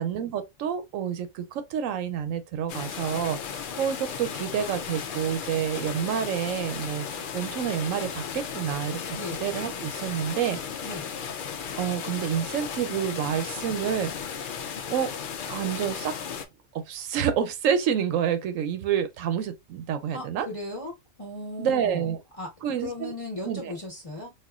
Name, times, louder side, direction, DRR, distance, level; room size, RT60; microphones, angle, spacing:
voice 1, 0.0-7.1 7.3-9.0 9.4-10.6 11.8-14.1 14.9-15.1 15.5-16.2 16.7-20.5 21.6-22.2 22.6-23.1 23.4-23.7, right 8 dB, 85° right, 1.0 m, -28 dB
sound 1, 2.7-16.4, left 7 dB, 60° left, 0.5 m, -35 dB
voice 2, 20.1-20.9 21.2-22.1 22.4-22.5 22.8-24.3, left 2 dB, 25° left, 1.2 m, -36 dB
4.3 x 2.3 x 2.4 m
omnidirectional pair, 1.3 m